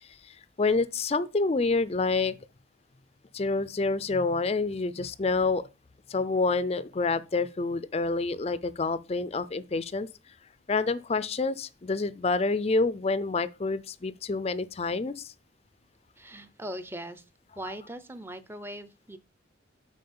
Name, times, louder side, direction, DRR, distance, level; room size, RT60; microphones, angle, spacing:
voice 1, 0.3-2.3 3.3-5.6 6.1-10.1 10.7-15.3, left 3 dB, 30° left, 0.4 m, -28 dB
voice 2, 16.2-17.2 17.6-19.2, right 1 dB, 10° right, 0.6 m, -40 dB
7.7 x 5.0 x 5.4 m
head